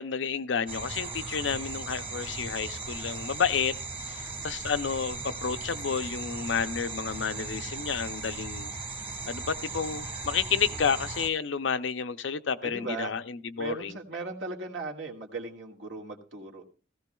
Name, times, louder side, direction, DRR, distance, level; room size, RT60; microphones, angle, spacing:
voice 1, 0.0-3.7 4.0-8.7 9.3-14.0, left 6 dB, 75° left, 0.6 m, -30 dB
sound 1, 0.7-11.3, right 3 dB, 30° right, 1.4 m, -37 dB
voice 2, 12.6-13.1 13.6-16.6, right 3 dB, 80° right, 1.9 m, -37 dB
16.5 x 15.0 x 2.3 m
head